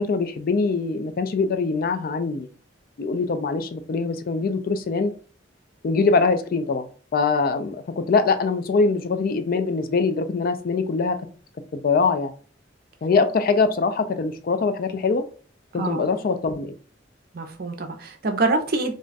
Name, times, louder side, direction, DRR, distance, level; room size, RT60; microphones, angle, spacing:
voice 1, 0.0-2.5 3.0-5.1 5.8-6.9 7.1-11.2 11.7-12.3 13.0-15.2 15.7-16.7, left 4 dB, 50° left, 9 dB, 0.3 m, -23 dB
voice 2, 15.7-16.1 17.3-18.9, right 3 dB, 50° right, 5 dB, 0.5 m, -25 dB
2.4 x 2.2 x 3.9 m, 0.40 s
head